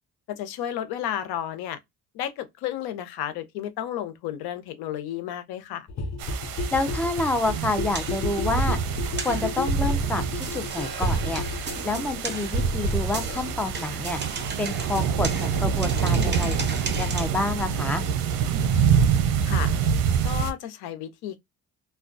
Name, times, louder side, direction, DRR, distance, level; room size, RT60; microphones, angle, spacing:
voice 1, 0.3-1.8 2.1-5.9 19.4-19.7 20.2-21.4, left 11 dB, 85° left, 0.6 m, -32 dB
sound 1, 5.9-17.4 17.7-17.8 18.0-18.1 18.3-18.4 18.6-18.7 18.9-19.0 19.2-19.3, left 3 dB, 45° left, 0.7 m, -34 dB
sound 2, 6.2-20.5, right 7 dB, 70° right, 0.6 m, -27 dB
voice 2, 6.7-8.8 9.2-11.4 11.8-14.2 14.6-16.7 17.0-18.0, left 2 dB, 5° left, 0.5 m, -28 dB
sound 3, 7.9-17.3, right 3 dB, 30° right, 0.8 m, -31 dB
2.3 x 2.2 x 2.4 m
cardioid pair, 80°, 37 cm